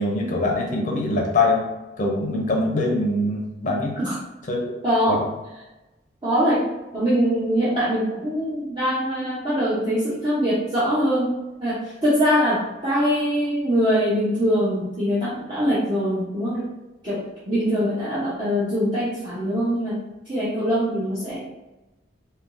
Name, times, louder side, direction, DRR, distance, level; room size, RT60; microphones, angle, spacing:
voice 1, 0.0-1.6 2.0-3.9 4.5-4.6 5.1-5.2, left 2 dB, 40° left, 0 dB, 0.5 m, -23 dB
voice 2, 4.8-5.2 6.2-6.7 6.9-16.7 17.0-21.4, equal, 25° right, -11 dB, 0.7 m, -23 dB
3.5 x 2.2 x 2.5 m, 1.0 s
head